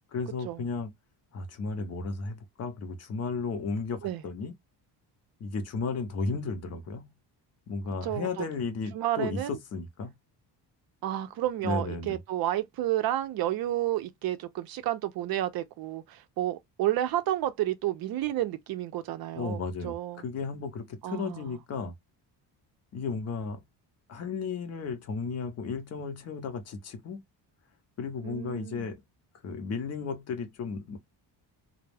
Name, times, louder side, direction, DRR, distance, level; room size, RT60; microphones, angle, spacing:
voice 1, 0.1-0.9 1.3-4.5 5.4-7.0 7.7-10.1 11.6-12.2 19.3-21.9 22.9-23.6 24.1-27.2 28.0-29.0 29.4-31.0, left 4 dB, 35° left, 0.6 m, -34 dB
voice 2, 8.0-8.4 8.9-9.6 11.0-20.2 21.0-21.4 28.2-28.9, right 13 dB, 55° right, 0.5 m, -31 dB
2.2 x 2.0 x 3.2 m
cardioid pair, 155°, 43 cm